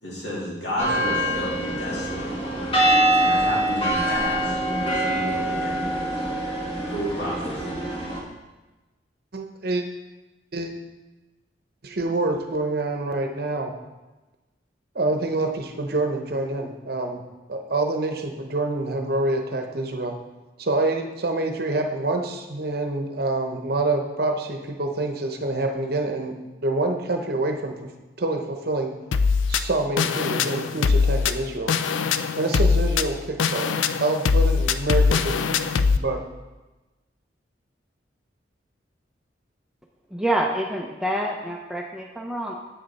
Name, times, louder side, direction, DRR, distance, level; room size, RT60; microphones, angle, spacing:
voice 1, 0.0-2.3 3.1-5.8 6.9-7.8, equal, 65° left, -5 dB, 2.6 m, -32 dB
sound 1, 0.8-8.2, right 1 dB, 25° left, 1.5 m, -24 dB
voice 2, 9.3-9.8 10.5-10.7 11.8-13.7 14.9-17.2 17.5-20.1 20.6-26.4 26.6-27.9 28.2-28.9 29.5-31.7 32.4-33.7 34.0-36.2, right 2 dB, 55° right, 4 dB, 0.8 m, -26 dB
sound 2, 29.1-36.0, left 5 dB, 85° left, 0.4 m, -22 dB
voice 3, 40.1-42.5, right 1 dB, 5° right, 0 dB, 0.5 m, -27 dB
7.9 x 6.6 x 4.1 m, 1.1 s
head